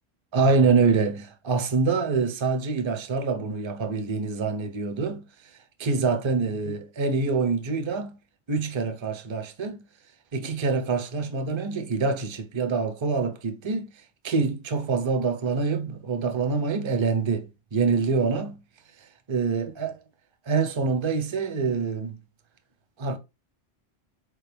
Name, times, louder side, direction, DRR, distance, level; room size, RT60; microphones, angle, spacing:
voice 1, 0.3-5.2 5.8-8.2 8.5-9.8 10.3-13.9 14.2-18.6 19.0-20.0 20.5-22.2 23.0-23.2, right 4 dB, 35° right, 0.4 m, -25 dB
4.3 x 3.2 x 3.3 m
omnidirectional pair, 1.3 m